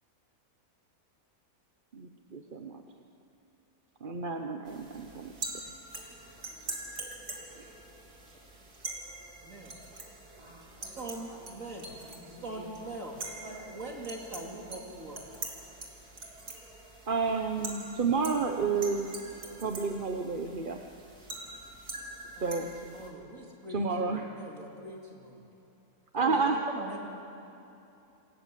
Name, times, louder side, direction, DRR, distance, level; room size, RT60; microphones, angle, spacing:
voice 1, 1.9-2.8 4.0-5.3 7.6-7.7 17.1-19.1 19.6-20.8 22.4-22.7 23.7-24.3 26.1-26.6, right 4 dB, 40° right, 4 dB, 1.1 m, -30 dB
sound 1, 4.7-23.1, right 2 dB, 85° right, 3.8 m, -44 dB
voice 2, 9.4-9.7 11.0-11.9 12.4-13.2 13.7-15.2 22.4-25.4 26.1-27.0, right 2 dB, 60° right, 0 dB, 3.1 m, -42 dB
voice 3, 10.4-12.7 13.4-13.7 14.6-14.8, right 1 dB, 20° right, -4 dB, 5.5 m, -51 dB
27.5 x 26.5 x 7.6 m, 2.8 s
omnidirectional pair, 1.6 m